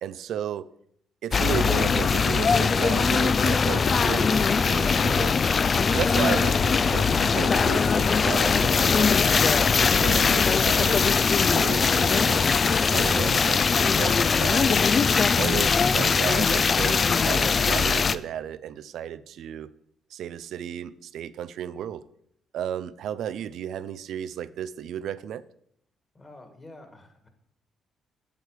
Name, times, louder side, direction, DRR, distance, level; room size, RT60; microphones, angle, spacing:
voice 1, 0.0-0.7 1.2-5.4 5.9-9.1 9.7-12.5 12.9-14.8 15.4-19.7 20.1-22.0 22.5-25.4, right 9 dB, 75° right, 0.3 m, -33 dB
sound 1, 1.3-18.2, left 5 dB, 40° left, 0.3 m, -21 dB
voice 2, 26.1-27.3, left 2 dB, 25° left, 1.8 m, -48 dB
8.1 x 6.4 x 4.9 m
cardioid pair, 90°, 0 cm